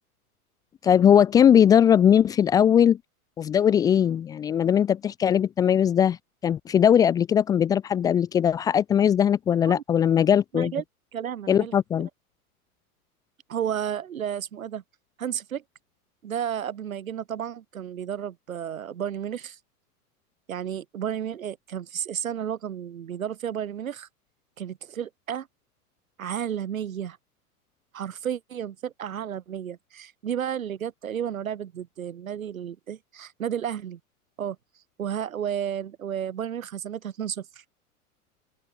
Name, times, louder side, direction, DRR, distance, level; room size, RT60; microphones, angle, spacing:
voice 1, 0.8-3.0 3.4-6.2 6.4-10.7 11.5-12.1, left 9 dB, 10° left, 1.8 m, -20 dB
voice 2, 10.5-10.8 11.1-11.7 13.5-14.8 15.2-15.6 16.2-19.6 20.5-24.1 24.6-25.5 26.2-27.2 27.9-34.0 34.4-34.6 35.0-37.5, right 9 dB, 60° right, 5.0 m, -32 dB
open air
hypercardioid pair, 175°, 45 cm